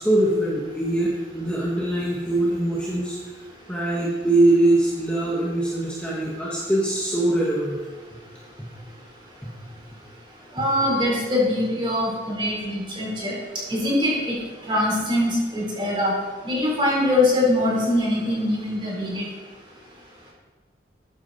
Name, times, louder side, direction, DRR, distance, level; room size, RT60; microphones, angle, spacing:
voice 1, 0.0-3.2 3.7-7.8 10.4-10.6, right 1 dB, 5° left, -6 dB, 1.6 m, -22 dB
voice 2, 10.6-13.3 13.7-14.3 14.6-16.1 16.4-19.3, left 1 dB, 30° right, -3 dB, 4.2 m, -23 dB
13.5 x 8.9 x 4.3 m, 1.3 s
head